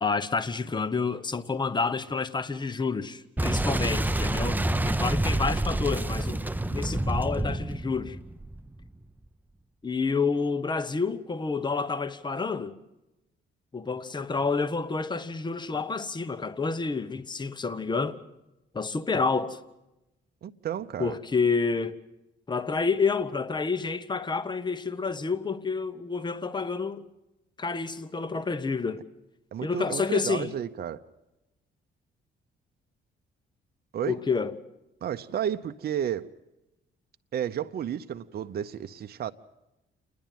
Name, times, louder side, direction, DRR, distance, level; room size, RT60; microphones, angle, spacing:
voice 1, 0.0-4.6 4.8-6.4 6.7-8.2 9.8-12.8 13.7-18.2 18.7-19.6 21.0-22.0 22.5-27.0 27.6-29.0 29.6-30.5 34.0-34.5, left 4 dB, 20° left, 1.0 m, -29 dB
Boom, 3.4-8.9, right 1 dB, 10° right, 0.7 m, -28 dB
voice 2, 20.4-21.2 29.5-31.0 33.9-34.2 35.0-36.3 37.3-39.3, right 9 dB, 50° right, 0.7 m, -32 dB
28.5 x 10.5 x 9.1 m
cardioid pair, 90°, 20 cm